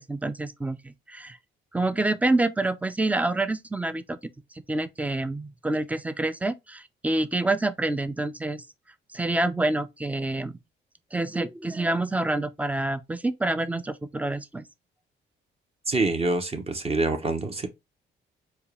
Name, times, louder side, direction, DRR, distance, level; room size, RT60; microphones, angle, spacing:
voice 1, 0.0-1.4 1.7-4.2 4.7-8.6 9.1-10.6 11.1-14.6, right 2 dB, 5° right, 0.4 m, -27 dB
voice 2, 15.9-17.7, right 2 dB, 30° right, 0.8 m, -26 dB
4.6 x 2.3 x 3.3 m
cardioid pair, 90°, 20 cm